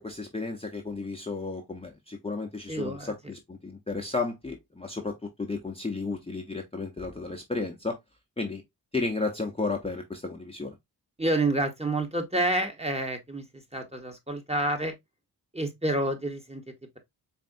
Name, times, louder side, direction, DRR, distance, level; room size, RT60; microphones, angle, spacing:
voice 1, 0.0-8.0 8.4-8.6 8.9-10.8, left 3 dB, 15° left, 0.9 m, -33 dB
voice 2, 2.7-3.3 11.2-14.9 15.5-16.6, right 1 dB, 15° right, 1.3 m, -29 dB
4.3 x 3.4 x 2.6 m
cardioid pair, 45°, 41 cm